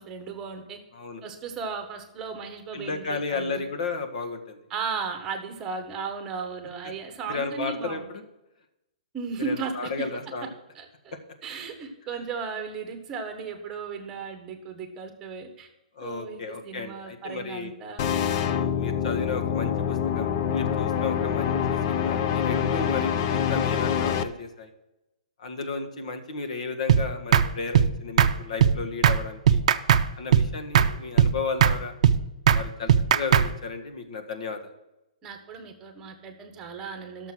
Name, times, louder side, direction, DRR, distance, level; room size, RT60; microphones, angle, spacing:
voice 1, 0.0-0.8 1.2-3.7 4.7-8.1 9.1-9.9 10.7-11.2 11.4-15.7 16.0-18.0 35.2-37.3, right 5 dB, 15° right, 6 dB, 1.3 m, -35 dB
voice 2, 2.7-4.6 7.3-8.2 9.4-10.5 15.9-17.7 18.5-24.7 25.4-29.6 30.2-31.9 32.5-34.6, left 4 dB, 60° left, 6 dB, 1.7 m, -34 dB
sound 1, 18.0-24.2, left 8 dB, 30° left, 0.5 m, -25 dB
sound 2, 26.9-27.0 27.3-27.5 27.7-27.9 28.2-28.3 28.6-28.7 29.0-29.2 29.5-30.0 30.3-30.5 30.7-30.9 31.2-31.3 31.6-31.8 32.0-32.2 32.5-32.6 32.9-33.5, right 8 dB, 55° right, 0.5 m, -18 dB
11.5 x 6.8 x 6.2 m, 0.93 s
hypercardioid pair, 165°, 4 cm